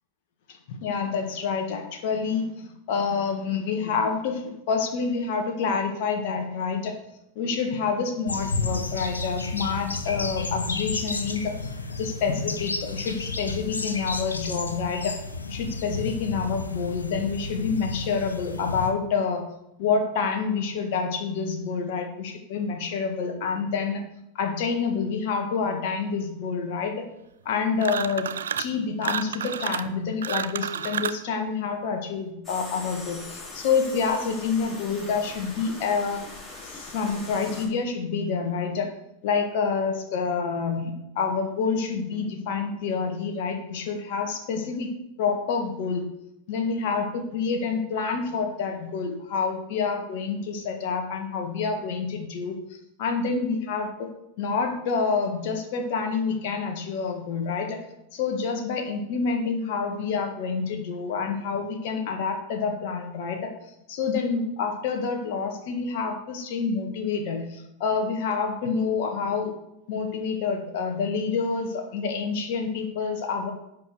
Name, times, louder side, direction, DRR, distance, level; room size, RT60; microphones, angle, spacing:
voice 1, 0.8-6.9 7.4-11.7 12.0-15.1 15.5-19.4 19.8-24.0 24.4-26.9 27.5-28.3 28.6-36.2 36.6-38.9 39.2-44.9 45.2-46.0 46.5-52.6 53.0-54.1 54.4-57.8 58.1-63.5 63.9-69.5 69.9-73.5, left 5 dB, 50° left, 4 dB, 1.8 m, -28 dB
sound 1, 8.3-18.9, left 3 dB, 75° left, 1.0 m, -32 dB
sound 2, 27.8-28.7 29.0-31.3, right 8 dB, 65° right, 0.5 m, -30 dB
sound 3, 32.4-37.7, left 2 dB, 15° left, 3.4 m, -41 dB
10.5 x 5.1 x 6.5 m, 0.85 s
figure-of-eight pair, 90°, 0 cm